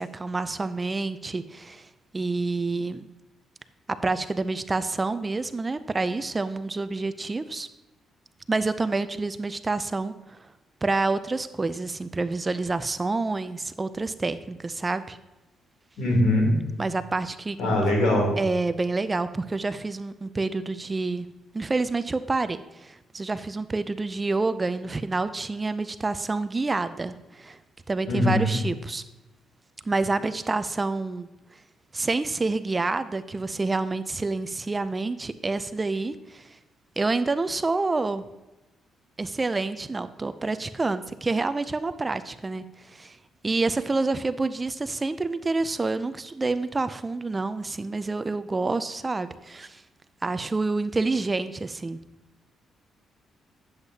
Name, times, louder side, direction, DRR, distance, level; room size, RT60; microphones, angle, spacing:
voice 1, 0.0-1.9 2.1-3.1 4.0-7.7 8.5-10.5 10.8-15.2 16.8-17.6 18.4-21.3 21.5-27.6 27.9-29.0 29.9-31.3 31.9-36.6 37.0-38.2 39.2-43.2 43.4-49.8 50.2-52.0, right 3 dB, 25° right, 12 dB, 0.4 m, -28 dB
voice 2, 16.0-16.5 17.6-18.3 28.1-28.5, left 1 dB, 70° left, 0 dB, 3.0 m, -21 dB
9.7 x 7.9 x 2.8 m, 1.0 s
cardioid pair, 90°, 0 cm